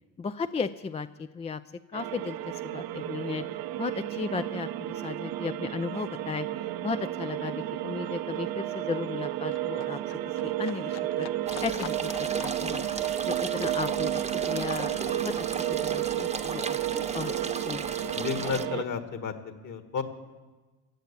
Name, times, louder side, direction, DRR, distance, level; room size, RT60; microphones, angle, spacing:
voice 1, 0.2-1.6 1.9-3.5 3.8-10.0 10.3-11.3 11.6-12.9 13.2-17.8, left 5 dB, 15° left, 11 dB, 0.4 m, -35 dB
sound 1, 1.9-18.8, right 13 dB, 60° right, 0.8 m, -32 dB
Livestock farm animals working animals, 4.9-5.0 5.2-16.2 16.5-17.5 17.8-17.9, left 13 dB, 65° left, 0.7 m, -49 dB
sound 2, 11.5-18.6, right 4 dB, 15° right, 1.0 m, -36 dB
voice 2, 18.0-20.0, left 6 dB, 45° left, 8 dB, 1.9 m, -32 dB
15.0 x 8.1 x 8.4 m, 1.2 s
hypercardioid pair, 65°, 42 cm